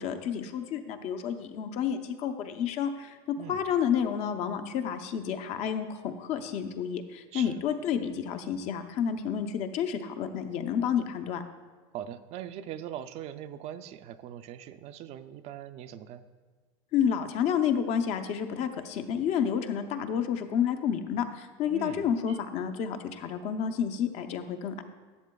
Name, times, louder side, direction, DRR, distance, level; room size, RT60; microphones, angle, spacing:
voice 1, 0.0-3.2 3.5-11.4 16.9-24.8, left 8 dB, 50° left, 8 dB, 0.7 m, -30 dB
voice 2, 11.9-16.3 21.7-22.4, right 10 dB, 50° right, 11 dB, 0.4 m, -41 dB
12.5 x 7.4 x 2.3 m, 1.4 s
supercardioid pair, 120°, 14 cm